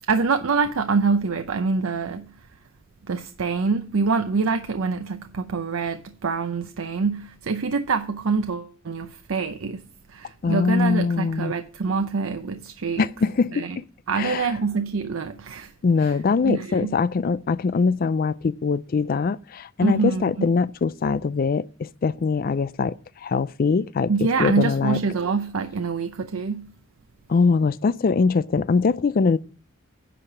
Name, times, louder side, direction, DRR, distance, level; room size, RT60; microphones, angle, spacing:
voice 1, 0.1-2.3 3.1-9.8 10.1-13.0 13.5-13.8 14.1-15.7 16.0-16.1 16.4-16.9 19.8-20.5 24.1-26.7, right 4 dB, 85° right, 0.6 m, -25 dB
voice 2, 10.4-11.5 13.0-13.8 14.1-14.5 15.8-25.0 27.3-29.4, left 4 dB, 45° left, 0.4 m, -22 dB
10.0 x 5.0 x 7.1 m
head